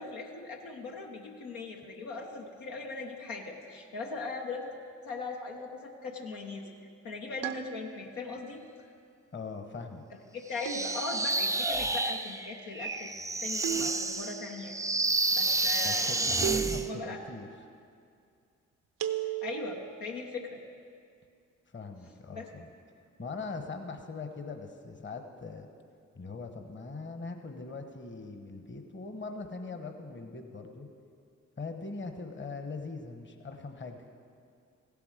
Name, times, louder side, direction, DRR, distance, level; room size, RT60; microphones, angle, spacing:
voice 1, 0.0-4.7 5.0-6.7 7.0-8.6 10.3-13.1 13.4-14.7 15.3-16.1 16.6-17.2 19.4-20.6 22.3-22.5, left 3 dB, 80° left, 1 dB, 1.0 m, -39 dB
sound 1, 7.4-8.3 10.6-11.5 13.6-14.5 16.4-17.3 19.0-19.9, right 12 dB, 75° right, 0.6 m, -35 dB
voice 2, 9.3-10.0 15.8-17.5 21.7-22.7 23.2-25.7 26.1-30.9 31.6-34.1, left 4 dB, 35° left, 6 dB, 1.2 m, -41 dB
sound 2, 10.6-16.9, right 2 dB, 10° right, 0.5 m, -30 dB
15.5 x 7.0 x 5.1 m, 2.3 s
supercardioid pair, 40°, 34 cm